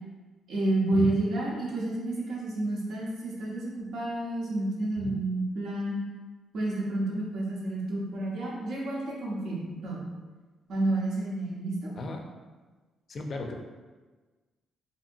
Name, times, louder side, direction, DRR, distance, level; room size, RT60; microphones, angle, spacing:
voice 1, 0.5-6.0 6.5-10.0 10.7-11.9, right 2 dB, 75° right, -4 dB, 0.8 m, -30 dB
voice 2, 13.1-13.5, left 2 dB, 50° left, 2 dB, 0.4 m, -35 dB
2.7 x 2.7 x 2.6 m, 1.3 s
cardioid pair, 90°, 0 cm